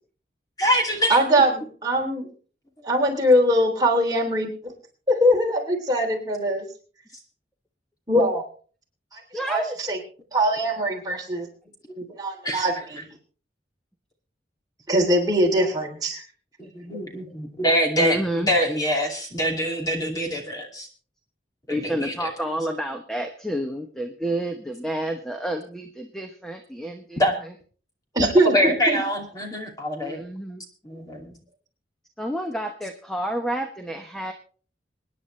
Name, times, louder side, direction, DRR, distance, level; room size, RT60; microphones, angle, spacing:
voice 1, 0.6-1.2 12.4-12.6 16.6-20.9 21.7-22.3 27.2-27.4 28.2-30.2 30.8-31.3, equal, 20° left, 2 dB, 2.5 m, -24 dB
voice 2, 1.1-2.3 2.8-4.5 5.1-6.6 8.1-8.4 9.1-10.0 10.3-11.5 12.0-13.1 14.9-16.2 28.1-29.0, equal, 20° right, 0 dB, 3.3 m, -22 dB
voice 3, 9.3-9.8 18.0-18.5 21.7-27.5 30.0-30.6 32.2-34.3, right 1 dB, 5° left, 4 dB, 1.0 m, -29 dB
26.5 x 10.0 x 3.3 m, 0.41 s
head